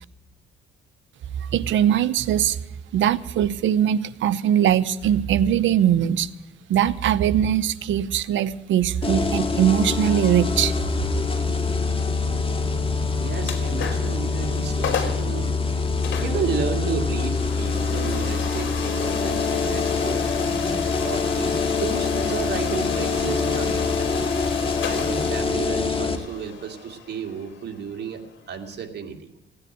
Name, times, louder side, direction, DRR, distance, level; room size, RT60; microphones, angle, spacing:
voice 1, 1.4-2.6 2.9-6.3 6.7-10.7, right 10 dB, 75° right, 15 dB, 0.8 m, -21 dB
sound 1, 9.0-26.2, left 4 dB, 25° left, 2.0 m, -25 dB
voice 2, 13.2-15.5 16.2-20.3 21.0-24.1 24.8-29.3, right 6 dB, 55° right, 4 dB, 2.4 m, -32 dB
sound 2, 13.4-14.2 14.6-14.7 14.8-15.3 16.0-28.8, left 7 dB, 70° left, 2.9 m, -33 dB
16.5 x 9.8 x 7.6 m, 1.0 s
cardioid pair, 90°, 20 cm